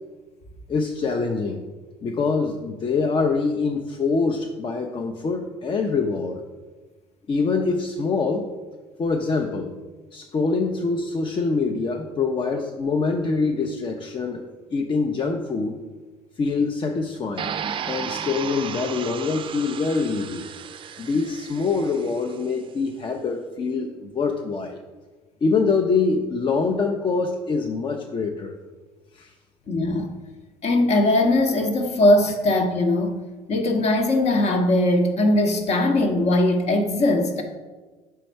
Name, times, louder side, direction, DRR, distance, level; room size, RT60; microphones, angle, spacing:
voice 1, 0.7-1.6 2.0-6.4 7.3-8.5 9.0-9.7 10.1-14.4 14.7-15.8 16.4-17.5 17.9-20.4 21.0-24.8 25.4-28.5 29.1-29.3, left 4 dB, 35° left, 3 dB, 0.6 m, -24 dB
sound 1, 17.4-22.4, right 8 dB, 35° right, 0.4 m, -34 dB
voice 2, 29.7-30.1 30.6-33.2 33.5-37.4, left 1 dB, 50° left, 4 dB, 1.0 m, -20 dB
5.7 x 4.1 x 4.5 m, 1.3 s
hypercardioid pair, 60°, 14 cm